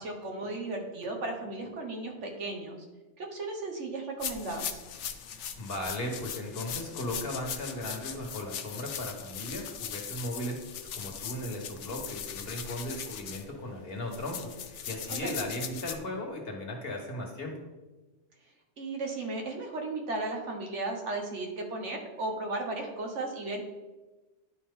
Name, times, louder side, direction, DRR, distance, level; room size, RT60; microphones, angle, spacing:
voice 1, 0.0-2.9 3.2-4.8 15.1-15.3 18.8-23.6, right 2 dB, 80° right, 2 dB, 1.6 m, -35 dB
sound 1, 4.2-16.0, left 8 dB, 80° left, 0.9 m, -39 dB
voice 2, 5.6-10.6 10.8-17.5, left 1 dB, 55° left, 1 dB, 1.6 m, -37 dB
11.0 x 4.4 x 3.7 m, 1.2 s
omnidirectional pair, 1.2 m